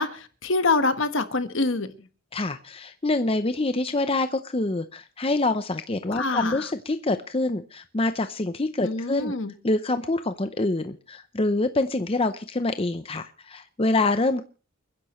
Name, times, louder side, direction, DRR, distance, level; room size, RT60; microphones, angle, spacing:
voice 1, 0.0-1.9 6.1-6.6 8.8-9.5, left 3 dB, 60° left, 1.4 m, -25 dB
voice 2, 2.3-9.3 9.6-14.4, left 2 dB, 25° left, 0.6 m, -26 dB
29.0 x 10.5 x 3.1 m
head